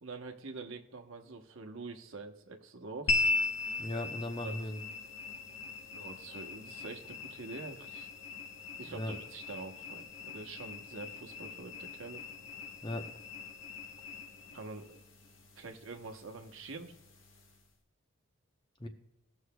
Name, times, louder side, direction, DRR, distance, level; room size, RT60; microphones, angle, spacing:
voice 1, 0.0-3.1 4.4-4.6 5.9-8.1 8.8-12.2 14.5-15.0 15.6-16.9, right 3 dB, 75° right, 4 dB, 1.0 m, -45 dB
sound 1, 3.1-17.7, left 3 dB, 70° left, 1.2 m, -39 dB
voice 2, 3.8-4.8 8.9-9.1 12.8-13.0 18.8-18.9, left 1 dB, 25° left, 4 dB, 0.8 m, -37 dB
18.5 x 6.3 x 2.2 m, 0.84 s
head